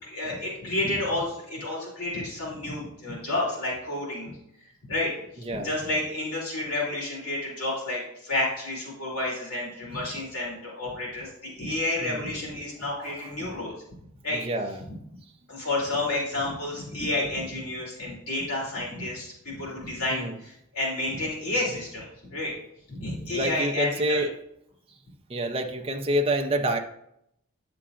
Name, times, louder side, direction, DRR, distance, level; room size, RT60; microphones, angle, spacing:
voice 1, 0.0-4.3 4.9-13.7 14.2-14.4 15.5-22.5 22.9-24.3, left 2 dB, 75° left, -4 dB, 2.8 m, -30 dB
voice 2, 5.4-5.8 12.0-12.3 12.9-13.3 14.3-14.9 20.1-20.4 23.3-24.3 25.3-26.8, right 1 dB, 25° right, 3 dB, 0.5 m, -28 dB
9.7 x 6.7 x 2.5 m, 0.76 s
head